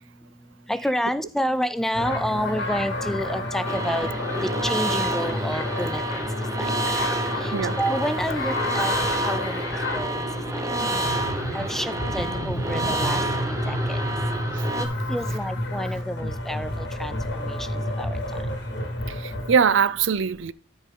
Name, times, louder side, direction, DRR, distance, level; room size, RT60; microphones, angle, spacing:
voice 1, 0.7-4.1 4.4-6.3 6.6-6.7 7.4-10.3 10.5-10.6 11.5-13.2 13.5-14.0 14.8-18.2, equal, ahead, 0.5 m, -29 dB
sound 1, 1.9-19.6, left 1 dB, 55° left, 2.2 m, -30 dB
sound 2, 3.6-14.9, right 2 dB, 15° right, 0.9 m, -29 dB
voice 2, 19.2-20.5, right 6 dB, 65° right, 0.5 m, -21 dB
13.5 x 5.3 x 3.8 m
head